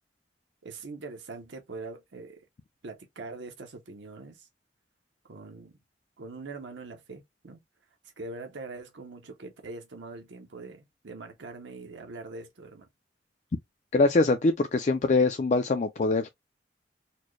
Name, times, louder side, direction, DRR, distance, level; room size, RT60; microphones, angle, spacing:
voice 1, 0.6-2.5 2.8-4.5 5.2-5.7 6.2-7.6 8.0-12.9, right 3 dB, 75° right, 0.7 m, -43 dB
voice 2, 13.9-16.3, left 3 dB, 40° left, 0.4 m, -23 dB
4.2 x 2.2 x 3.1 m
head